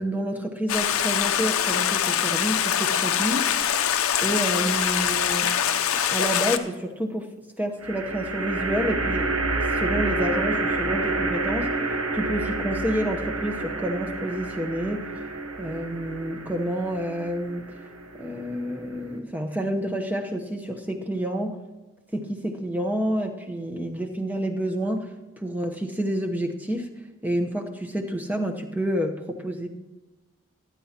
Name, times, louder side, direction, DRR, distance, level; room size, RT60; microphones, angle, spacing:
voice 1, 0.0-3.5 4.2-5.5 6.1-7.3 7.6-9.3 9.7-15.2 15.6-17.7 18.2-21.6 22.1-25.1 25.4-26.9 27.2-29.7, equal, 10° right, 3 dB, 0.9 m, -29 dB
Stream, 0.7-6.6, left 9 dB, 90° left, 0.6 m, -24 dB
sound 1, 4.7-5.3 7.8-19.2, right 2 dB, 85° right, 1.0 m, -29 dB
19.0 x 9.9 x 2.9 m, 1.1 s
head